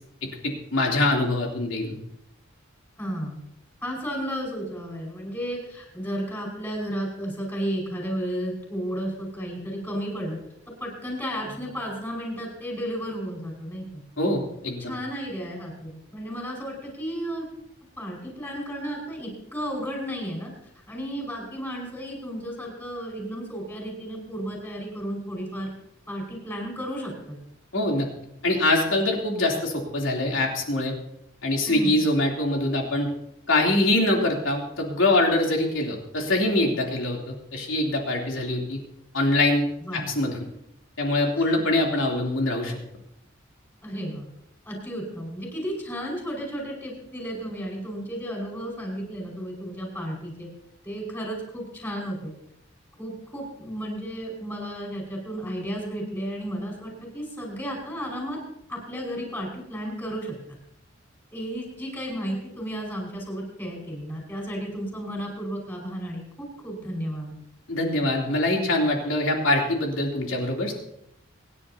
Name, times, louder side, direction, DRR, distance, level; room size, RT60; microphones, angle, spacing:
voice 1, 0.4-2.0 14.2-14.9 27.7-28.1 28.4-30.9 31.4-33.1 33.5-38.8 39.1-39.6 39.9-40.4 41.0-42.7 67.7-70.7, left 2 dB, 85° left, 0 dB, 3.2 m, -24 dB
voice 2, 3.0-3.4 3.8-10.4 10.8-14.0 14.8-17.5 18.0-20.5 20.9-25.7 26.1-27.4 31.7-32.0 39.8-40.1 41.4-41.6 43.8-44.3 44.6-50.5 50.8-52.3 53.0-58.4 58.7-60.3 61.3-67.4, equal, 10° left, -1 dB, 5.0 m, -33 dB
26.0 x 10.0 x 2.8 m, 0.77 s
head